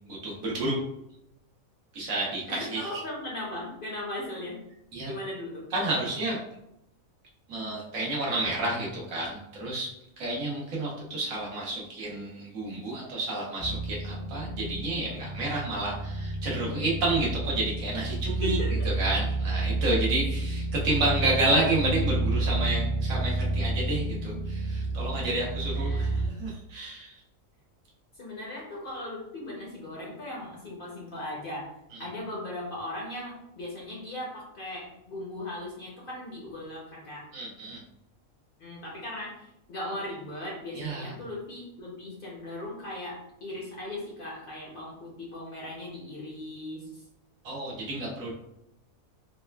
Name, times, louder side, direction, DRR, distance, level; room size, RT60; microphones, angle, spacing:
voice 1, 0.1-0.8 1.9-3.0 4.9-5.1 5.7-6.4 7.5-9.9 10.2-18.6 18.8-27.2 37.3-37.8 40.7-41.1 47.4-48.3, right 2 dB, 70° right, -3 dB, 1.2 m, -30 dB
voice 2, 2.5-4.6 5.0-5.7 18.4-18.9 25.7-26.3 28.2-31.7 32.0-37.3 38.6-47.0, left 1 dB, 50° left, -4 dB, 0.8 m, -38 dB
sound 1, 13.6-26.3, right 2 dB, 85° left, 1.4 m, -30 dB
4.1 x 2.2 x 2.2 m, 0.82 s
omnidirectional pair, 1.4 m